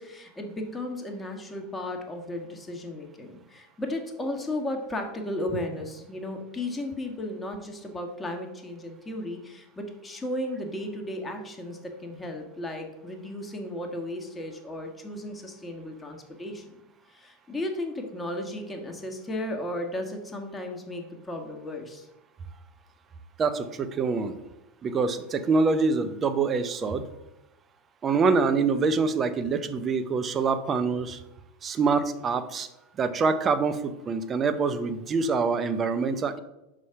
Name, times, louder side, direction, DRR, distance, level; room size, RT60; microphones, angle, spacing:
voice 1, 0.0-16.8 17.1-22.1, left 1 dB, 15° left, 2 dB, 1.4 m, -35 dB
voice 2, 23.4-24.4 24.8-27.1 28.0-31.2 31.6-32.7 33.0-36.4, right 4 dB, 30° right, 11 dB, 0.7 m, -25 dB
5.5 x 4.9 x 5.6 m, 0.94 s
hypercardioid pair, 85°, 0 cm